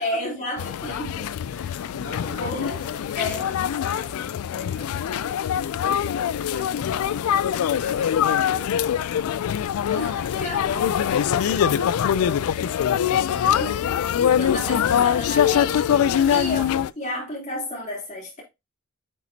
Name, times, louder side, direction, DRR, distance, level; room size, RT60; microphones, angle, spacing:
voice 1, 0.0-1.3 1.9-2.7 3.1-3.5 9.9-10.1 10.4-10.8 13.5-13.8 14.2-16.7 17.0-18.4, left 1 dB, 35° left, 3.5 m, -32 dB
voice 2, 0.5-1.0 1.5-9.2 9.7-12.7 13.3-13.7 16.1-16.5, left 2 dB, 60° left, 2.9 m, -44 dB
sound 1, 0.6-16.9, left 9 dB, 80° left, 0.3 m, -23 dB
8.2 x 4.2 x 2.8 m
head